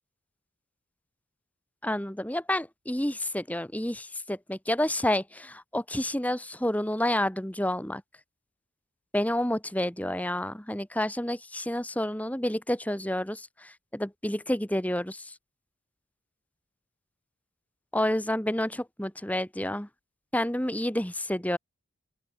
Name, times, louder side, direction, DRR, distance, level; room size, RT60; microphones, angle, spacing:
voice 1, 1.8-8.0 9.1-15.3 17.9-19.9 20.3-21.6, left 1 dB, 5° left, 1.2 m, -29 dB
open air
head